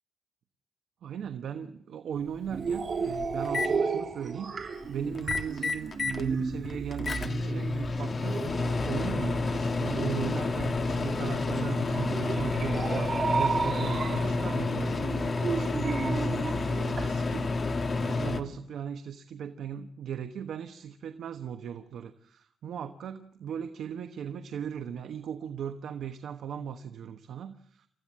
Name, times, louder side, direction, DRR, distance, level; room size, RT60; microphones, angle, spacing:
voice 1, 1.0-16.4 17.0-17.5 18.0-27.9, right 8 dB, 65° right, 8 dB, 1.2 m, -38 dB
Microwave oven, 2.2-2.3 2.7-3.7 5.1-6.2 6.6-18.4, left 3 dB, 30° left, 1.5 m, -30 dB
sound 1, 2.5-17.1, right 4 dB, 35° right, 3.0 m, -34 dB
28.5 x 14.5 x 7.5 m, 0.72 s
wide cardioid pair, 165°, 0 cm